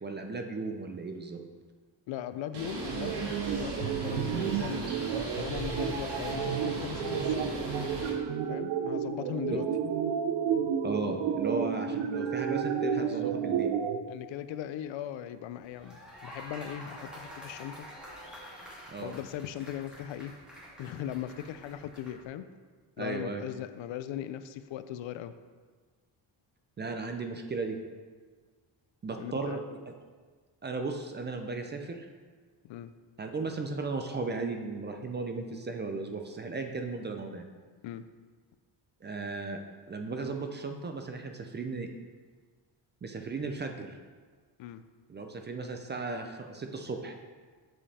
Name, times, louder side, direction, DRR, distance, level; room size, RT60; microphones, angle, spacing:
voice 1, 0.0-1.4 9.5-9.6 10.8-13.7 18.9-19.1 23.0-23.4 26.8-27.8 29.0-29.9 30.6-32.1 33.2-37.4 39.0-39.6 39.9-41.9 43.0-44.0 45.1-47.2, right 3 dB, 25° right, 5 dB, 0.4 m, -35 dB
voice 2, 2.1-4.9 5.3-7.6 8.5-9.6 10.5-10.7 13.0-13.3 14.1-17.9 19.0-20.3 20.8-22.5 23.0-25.3 29.2-29.6 32.6-32.9 37.8-38.0 44.6-44.8, left 11 dB, 80° left, 12 dB, 0.5 m, -39 dB
Bird, 2.5-8.1, right 2 dB, 60° right, 1.8 m, -38 dB
sound 1, 2.9-14.0, right 7 dB, 90° right, 0.7 m, -31 dB
sound 2, 15.6-22.3, equal, ahead, 2.2 m, -48 dB
7.7 x 5.2 x 4.2 m, 1.5 s
cardioid pair, 155°, 46 cm